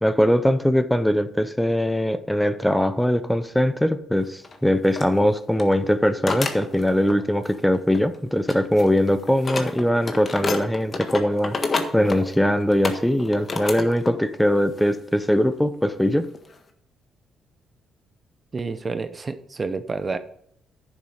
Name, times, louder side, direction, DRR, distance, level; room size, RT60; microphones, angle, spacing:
voice 1, 0.0-11.6 11.9-16.3, equal, 5° left, 12 dB, 0.8 m, -21 dB
sound 1, 4.4-4.6 4.9-5.1 5.5-5.7 6.3-7.2 7.5-8.2 8.5-14.2 14.5-14.8 15.5-15.6 16.2-16.5, left 3 dB, 35° left, 1.5 m, -30 dB
voice 2, 18.5-20.2, right 4 dB, 30° right, 11 dB, 0.7 m, -29 dB
10.0 x 7.3 x 5.0 m, 0.69 s
cardioid pair, 90°, 0 cm